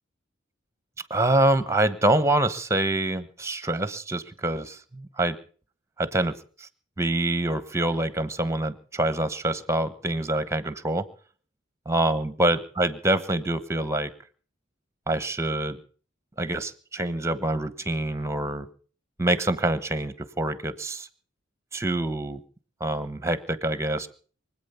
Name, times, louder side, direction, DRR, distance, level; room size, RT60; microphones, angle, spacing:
voice 1, 1.1-5.4 6.0-6.3 6.6-6.7 7.0-11.1 11.9-14.1 15.1-15.8 16.4-18.7 19.2-21.1 21.7-22.4 22.8-24.1, right 1 dB, 15° right, 14 dB, 1.1 m, -26 dB
24.0 x 8.7 x 6.9 m, 0.43 s
head